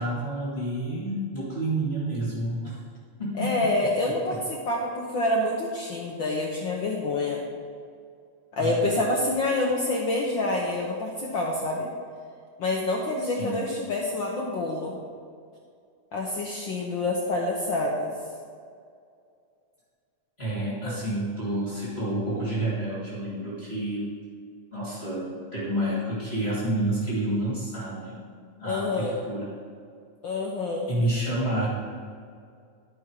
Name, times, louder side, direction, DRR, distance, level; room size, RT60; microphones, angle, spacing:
voice 1, 0.0-2.8 3.2-3.6 4.3-4.4 8.6-9.0 13.2-13.6 20.4-24.1 24.7-28.2 28.6-29.5 30.9-31.7, right 1 dB, 20° left, -8 dB, 2.5 m, -29 dB
voice 2, 3.3-7.4 8.5-11.9 12.6-15.0 16.1-18.1 20.8-21.0 28.6-29.2 30.2-30.9, left 2 dB, 65° left, -2 dB, 1.2 m, -27 dB
12.0 x 6.3 x 4.7 m, 2.3 s
omnidirectional pair, 3.3 m